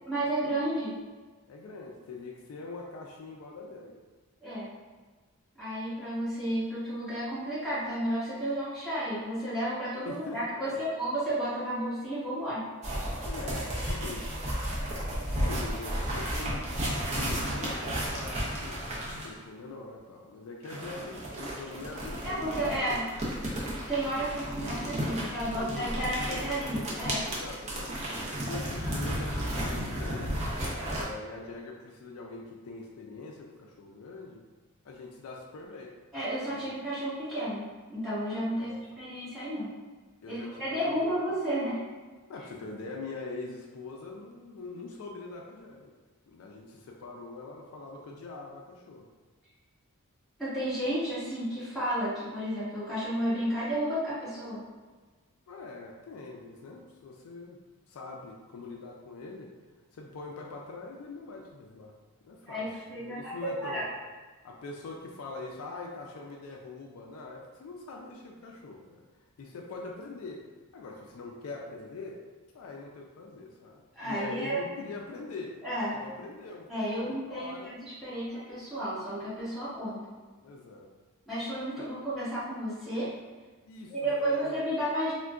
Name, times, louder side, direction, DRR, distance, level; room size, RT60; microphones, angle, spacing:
voice 1, 0.1-0.9 4.4-4.7 5.6-12.6 22.2-23.1 23.9-27.2 36.1-39.7 40.3-41.8 50.4-54.6 62.5-63.9 73.9-74.6 75.6-75.9 76.7-80.0 81.3-83.1 83.9-85.1, right 1 dB, ahead, -14 dB, 1.3 m, -32 dB
voice 2, 1.5-4.0 10.0-10.8 13.2-14.5 15.1-18.9 19.2-22.9 24.4-24.8 25.5-26.7 27.2-28.0 28.5-30.5 31.0-34.4 34.8-36.0 36.5-36.8 38.5-39.0 40.2-41.2 42.3-45.9 46.3-49.1 55.5-57.6 57.9-59.5 59.9-61.9 62.2-63.9 64.4-69.0 69.4-70.4 70.7-72.2 72.5-75.5 75.8-76.7 77.0-77.8 80.4-80.9 81.8-81.9 83.7-84.8, left 3 dB, 65° left, 0 dB, 0.3 m, -43 dB
sound 1, 12.8-19.4 20.6-31.0, equal, 30° right, 0.5 m, -33 dB
3.5 x 2.1 x 2.3 m, 1.3 s
head